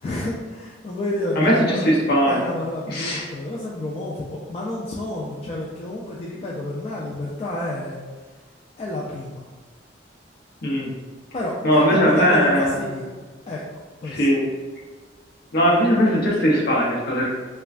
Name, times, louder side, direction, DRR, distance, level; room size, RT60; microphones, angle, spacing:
voice 1, 0.0-1.9 2.2-8.0 8.8-9.4 11.3-13.6 14.0-14.3, left 1 dB, 35° left, -4 dB, 0.3 m, -30 dB
voice 2, 1.4-2.4 2.9-3.2 10.6-10.9 11.6-12.7 14.1-14.4 15.5-17.3, equal, 60° left, -3 dB, 0.7 m, -19 dB
3.2 x 2.2 x 2.4 m, 1.4 s
head